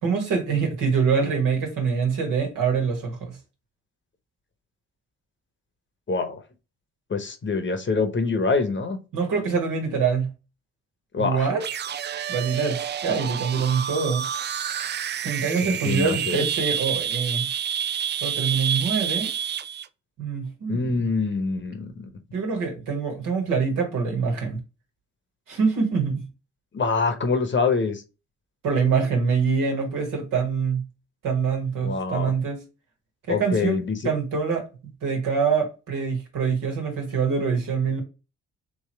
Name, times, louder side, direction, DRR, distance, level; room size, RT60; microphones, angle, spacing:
voice 1, 0.0-3.4 9.1-10.3 11.2-11.6 12.3-14.3 15.2-17.5 18.2-19.3 20.2-21.0 22.3-24.6 25.5-26.2 28.6-30.8 31.2-32.6 33.3-34.6 35.0-38.0, right 5 dB, 70° right, 1.7 m, -25 dB
voice 2, 6.1-6.4 7.1-9.0 11.1-11.5 15.6-16.4 20.7-22.1 26.7-28.0 31.8-32.3 33.3-34.1, left 4 dB, 35° left, 1.0 m, -25 dB
sound 1, 11.6-19.9, right 9 dB, 35° right, 0.4 m, -29 dB
3.3 x 3.1 x 4.5 m
hypercardioid pair, 45°, 34 cm